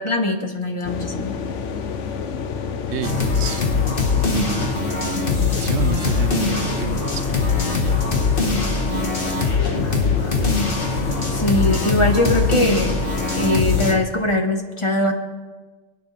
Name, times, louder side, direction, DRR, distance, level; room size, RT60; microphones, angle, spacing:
voice 1, 0.0-1.4 11.4-13.0 13.3-15.1, left 1 dB, 25° left, 3 dB, 1.6 m, -21 dB
sound 1, 0.8-14.0, left 5 dB, 75° left, 1.2 m, -29 dB
voice 2, 2.8-3.7 4.0-4.7 5.2-8.3, right 9 dB, 70° right, 13 dB, 0.9 m, -31 dB
sound 2, 3.0-13.9, left 4 dB, 50° left, 1.8 m, -22 dB
27.0 x 9.8 x 3.4 m, 1.4 s
omnidirectional pair, 1.2 m